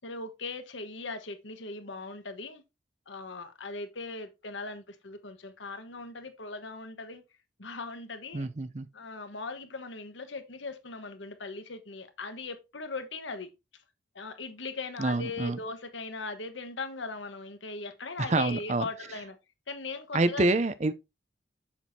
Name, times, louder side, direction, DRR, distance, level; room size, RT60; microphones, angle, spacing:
voice 1, 0.0-2.6 3.1-7.2 7.6-8.5 8.9-13.5 14.1-19.4 19.7-20.5, left 3 dB, 80° left, 1.2 m, -39 dB
voice 2, 8.3-8.9 15.0-15.6 18.2-18.9 20.1-20.9, right 2 dB, 35° right, 0.5 m, -27 dB
7.2 x 6.2 x 2.7 m
head